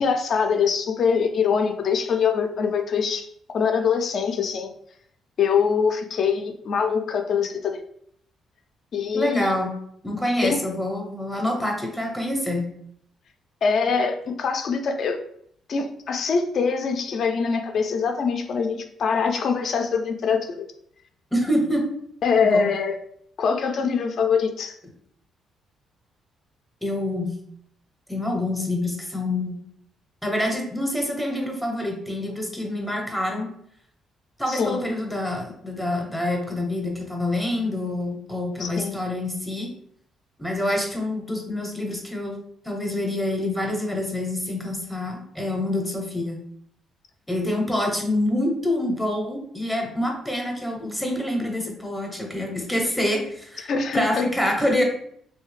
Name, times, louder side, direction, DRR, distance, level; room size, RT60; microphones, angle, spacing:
voice 1, 0.0-3.3 3.5-4.7 5.4-7.8 8.9-9.5 10.4-10.6 13.6-15.2 15.7-20.7 22.2-22.9 23.4-24.8 34.5-34.8 38.6-39.0 53.7-54.3, left 6 dB, 45° left, 6 dB, 0.4 m, -23 dB
voice 2, 9.1-9.7 10.0-12.6 21.3-21.9 22.3-22.7 26.8-27.4 28.1-29.6 30.2-33.5 34.4-39.7 40.4-42.4 42.6-46.4 47.3-54.8, left 1 dB, 5° left, 1 dB, 0.6 m, -26 dB
3.2 x 2.7 x 3.1 m, 0.68 s
cardioid pair, 160°, 0 cm